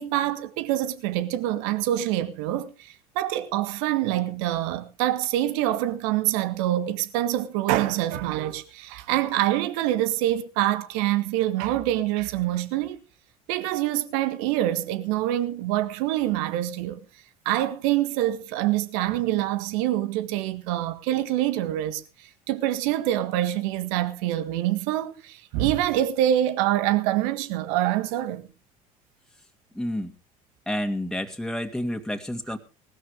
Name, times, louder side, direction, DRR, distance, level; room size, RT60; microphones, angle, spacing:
voice 1, 0.0-13.0 13.5-17.0 17.4-28.5, right 13 dB, 60° right, 1.7 m, -25 dB
voice 2, 29.7-30.1 30.7-32.6, left 1 dB, 5° left, 2.5 m, -29 dB
19.5 x 13.0 x 3.6 m
figure-of-eight pair, 60°, 19 cm